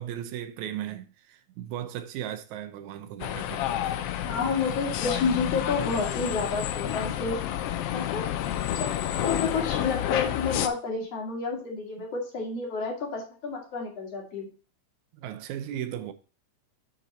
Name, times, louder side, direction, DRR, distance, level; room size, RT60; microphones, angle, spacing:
voice 1, 0.0-3.9 7.7-7.8 15.1-16.1, right 11 dB, 80° right, 2.1 m, -36 dB
sound 1, 3.2-10.7, left 11 dB, 85° left, 1.3 m, -30 dB
voice 2, 4.2-7.4 7.9-8.3 8.7-14.5, left 4 dB, 55° left, 3.0 m, -30 dB
8.9 x 4.4 x 4.0 m
omnidirectional pair, 3.4 m